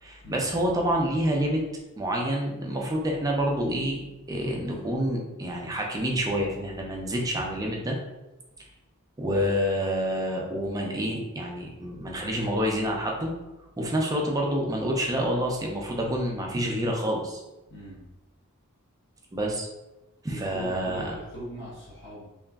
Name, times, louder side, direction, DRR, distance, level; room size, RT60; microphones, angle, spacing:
voice 1, 0.0-1.6 2.0-8.0 9.2-13.3 13.8-17.4 19.3-19.7 20.2-21.1, equal, 15° right, -1 dB, 0.4 m, -28 dB
voice 2, 17.7-18.0 20.3-22.3, equal, 50° left, -7 dB, 0.8 m, -40 dB
2.9 x 2.4 x 2.3 m, 1.0 s
head